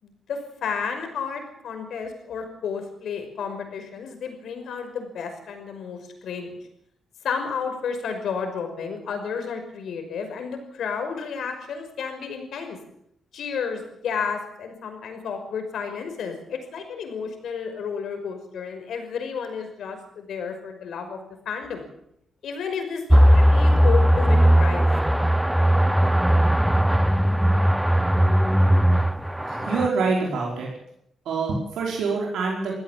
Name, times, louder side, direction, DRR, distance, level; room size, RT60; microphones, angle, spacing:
voice 1, 0.0-6.6 7.2-12.8 13.3-21.2 21.5-21.9 22.4-24.9, left 6 dB, 75° left, 5 dB, 5.6 m, -32 dB
sound 1, 23.1-29.9, equal, 5° right, 0.7 m, -18 dB
voice 2, 29.4-30.7 31.2-32.7, right 4 dB, 85° right, -2 dB, 5.0 m, -25 dB
23.5 x 16.0 x 7.6 m, 0.75 s
cardioid pair, 125°, 0 cm